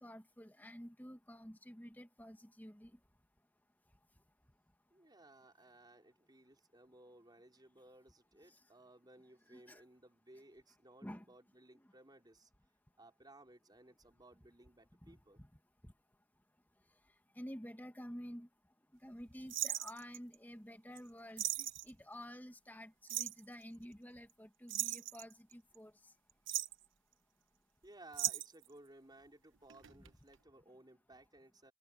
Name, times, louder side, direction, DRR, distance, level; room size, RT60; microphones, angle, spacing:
voice 1, 0.0-2.9 9.5-9.8 11.0-11.2 11.8-11.9 15.0-15.5 15.8-15.9 17.4-18.5 19.0-25.9, equal, 10° left, 1.9 m, -51 dB
voice 2, 4.9-12.5 13.0-15.4 27.8-31.7, right 2 dB, 20° right, 4.8 m, -60 dB
sound 1, 19.5-20.3 21.0-21.1 21.4-21.9 23.1-23.4 24.7-25.7 26.3-26.8 28.1-28.7 29.7-30.1 30.3-30.4, right 12 dB, 70° right, 1.2 m, -38 dB
head